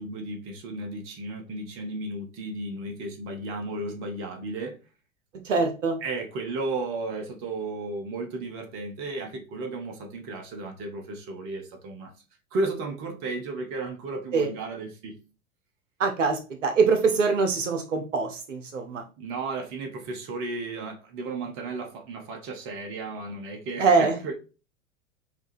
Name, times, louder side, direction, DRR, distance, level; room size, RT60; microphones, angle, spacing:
voice 1, 0.0-4.8 6.0-12.1 12.5-15.2 19.2-24.3, right 2 dB, 35° right, 0.8 m, -34 dB
voice 2, 5.4-6.0 14.3-14.5 16.0-19.0 23.8-24.1, right 4 dB, 65° right, 0.8 m, -23 dB
4.7 x 2.4 x 2.6 m
figure-of-eight pair, 95°, 40 cm